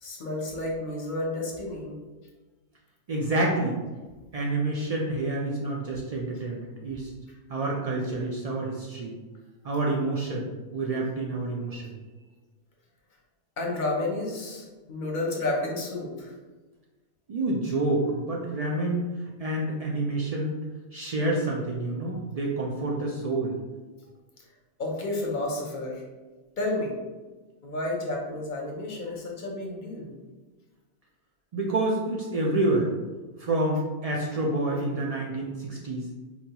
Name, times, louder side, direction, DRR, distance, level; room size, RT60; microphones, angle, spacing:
voice 1, 0.0-1.9 13.6-16.3 24.8-26.0 26.6-26.9 27.6-30.1, left 2 dB, 50° left, -1 dB, 0.8 m, -31 dB
voice 2, 3.1-3.8 4.3-7.1 7.5-9.1 9.6-11.9 17.3-19.1 19.4-20.6 20.9-23.5 31.5-32.9 33.4-36.0, right 2 dB, 70° right, -3 dB, 0.3 m, -28 dB
4.2 x 2.3 x 2.8 m, 1.3 s
omnidirectional pair, 1.2 m